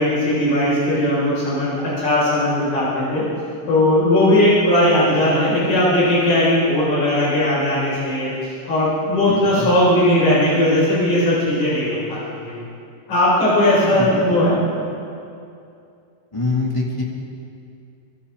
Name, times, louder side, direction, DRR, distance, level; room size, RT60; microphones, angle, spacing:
voice 1, 0.0-3.2 3.7-12.5 13.1-14.5, left 1 dB, 50° left, -8 dB, 8.6 m, -18 dB
voice 2, 9.3-9.7 13.8-14.4 16.3-17.0, left 3 dB, 10° left, -4 dB, 2.6 m, -25 dB
25.5 x 23.5 x 4.3 m, 2.5 s
omnidirectional pair, 5.1 m